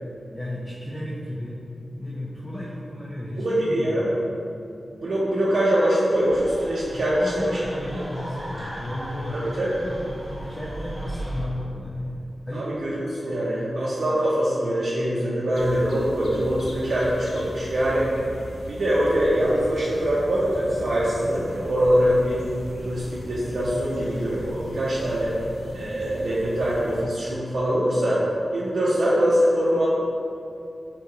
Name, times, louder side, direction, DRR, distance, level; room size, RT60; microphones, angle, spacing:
voice 1, 0.3-1.6 2.0-4.0 6.9-12.7, left 1 dB, 15° left, -7 dB, 0.4 m, -33 dB
voice 2, 3.4-4.1 5.0-7.1 9.3-9.8 12.5-18.1 18.7-22.4 22.8-25.3 25.7-28.3 28.5-29.9, equal, 65° right, -9 dB, 0.5 m, -23 dB
sound 1, 6.2-11.5, right 1 dB, 30° right, 1.0 m, -37 dB
sound 2, 15.5-27.0, equal, 90° left, 0.4 m, -39 dB
3.7 x 2.8 x 2.3 m, 2.6 s
wide cardioid pair, 135°, 0 cm